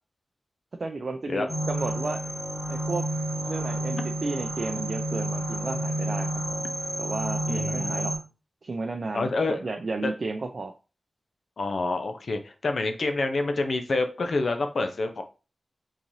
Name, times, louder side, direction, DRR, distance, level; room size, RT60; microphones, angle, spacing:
voice 1, 0.8-2.2 2.7-3.0 3.4-6.3 7.0-8.1 8.6-10.7, right 3 dB, 55° right, 5 dB, 0.3 m, -33 dB
sound 1, 1.5-8.2, right 1 dB, 35° left, 1.3 m, -30 dB
voice 2, 7.5-8.0 9.1-9.6 10.0-10.1 11.6-15.2, left 3 dB, 70° left, 6 dB, 0.5 m, -27 dB
3.7 x 2.6 x 3.0 m, 0.33 s
cardioid pair, 65°, 0 cm